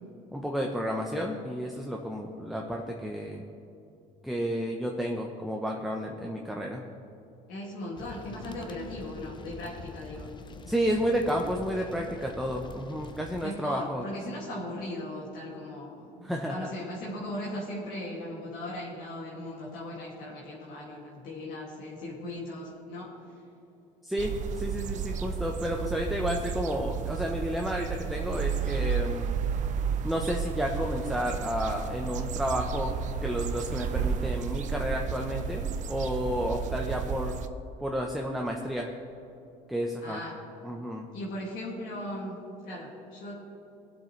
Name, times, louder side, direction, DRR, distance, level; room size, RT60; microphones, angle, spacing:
voice 1, 0.3-3.5 4.2-6.8 10.7-14.1 16.2-16.7 24.0-29.3 30.0-32.9 33.2-37.3 37.8-38.9 39.7-40.2 40.6-41.1, equal, ahead, 0 dB, 0.9 m, -31 dB
voice 2, 7.5-10.3 13.4-23.4 40.0-40.4 41.1-43.4, left 1 dB, 65° left, -5 dB, 2.3 m, -38 dB
sound 1, 8.0-13.4, left 4 dB, 30° left, 0.7 m, -45 dB
sound 2, 24.2-37.5, right 6 dB, 50° right, 0.7 m, -32 dB
19.5 x 7.8 x 3.2 m, 2.8 s
cardioid pair, 110°, 16 cm